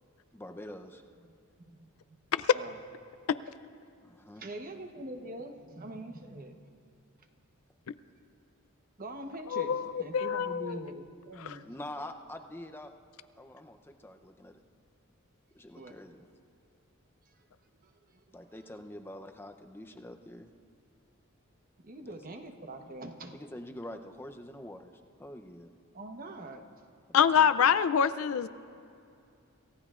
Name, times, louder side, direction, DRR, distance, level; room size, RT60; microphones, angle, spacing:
voice 1, 0.3-1.0 4.0-4.5 11.6-12.9 13.4-14.6 15.5-16.3 18.3-20.5 22.0-22.2 23.3-24.9 25.2-25.7 27.1-27.7, left 1 dB, 10° left, 5 dB, 0.6 m, -45 dB
voice 2, 4.4-6.6 9.0-11.6 15.7-15.9 17.8-17.9 18.3-18.5 21.8-23.4 25.9-26.6, right 1 dB, 40° right, 5 dB, 1.0 m, -43 dB
voice 3, 9.5-10.8 11.4-11.6 27.1-28.5, left 7 dB, 75° left, 14 dB, 0.4 m, -25 dB
28.0 x 15.5 x 2.5 m, 2.5 s
head